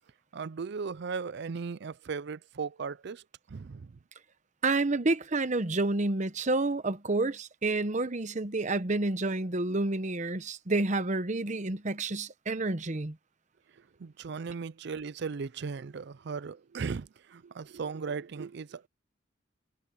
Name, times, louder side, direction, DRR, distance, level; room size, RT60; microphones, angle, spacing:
voice 1, 0.3-4.0 14.0-18.9, right 5 dB, 60° right, 0.4 m, -37 dB
voice 2, 4.6-13.2, right 2 dB, 40° right, 0.9 m, -29 dB
head